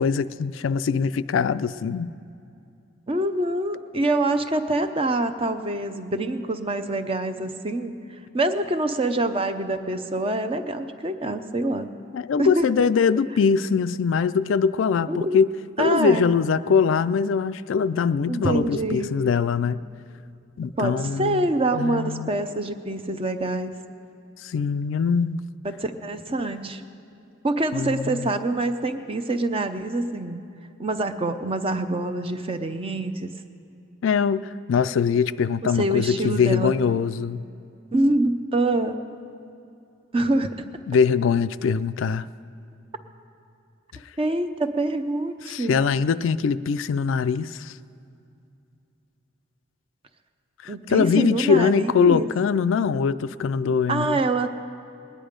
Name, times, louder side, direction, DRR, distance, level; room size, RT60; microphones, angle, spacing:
voice 1, 0.0-2.1 12.1-15.5 15.8-19.8 20.6-21.5 21.7-22.3 24.4-25.4 27.7-28.3 34.0-37.4 40.9-42.3 45.5-47.7 50.6-54.2, left 6 dB, 75° left, 14 dB, 0.4 m, -22 dB
voice 2, 3.1-8.0 8.3-11.9 12.4-12.7 15.1-15.4 15.8-16.2 18.3-19.1 20.8-23.8 25.6-26.8 27.4-30.4 30.8-33.3 35.6-36.8 37.9-39.0 40.1-40.7 44.2-45.8 50.7-52.3 53.9-54.5, right 2 dB, 30° right, 8 dB, 0.6 m, -25 dB
20.0 x 10.0 x 5.1 m, 2.6 s
head